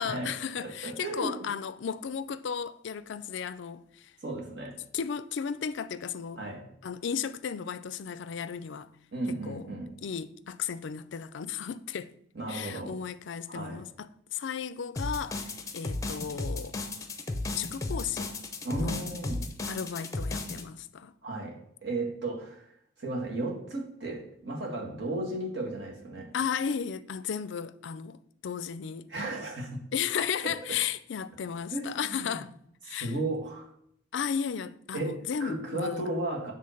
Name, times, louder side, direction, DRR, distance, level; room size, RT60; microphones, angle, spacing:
voice 1, 0.0-4.1 4.9-6.4 6.8-8.9 9.4-9.6 10.0-12.1 12.5-16.8 17.5-18.3 18.8-19.0 19.7-21.1 26.3-29.1 29.9-32.5 32.8-33.1 34.1-36.1, left 7 dB, 65° left, 0.4 m, -34 dB
voice 2, 0.6-1.4 4.2-4.8 6.4-6.7 9.1-9.9 12.3-13.0 13.5-13.8 18.6-19.4 21.2-22.6 23.0-26.3 29.1-29.8 30.4-30.5 31.7-32.3 32.9-33.7 34.9-36.5, right 2 dB, 60° right, 1.9 m, -34 dB
sound 1, 15.0-20.6, left 2 dB, 15° left, 0.7 m, -34 dB
7.6 x 3.7 x 6.4 m
head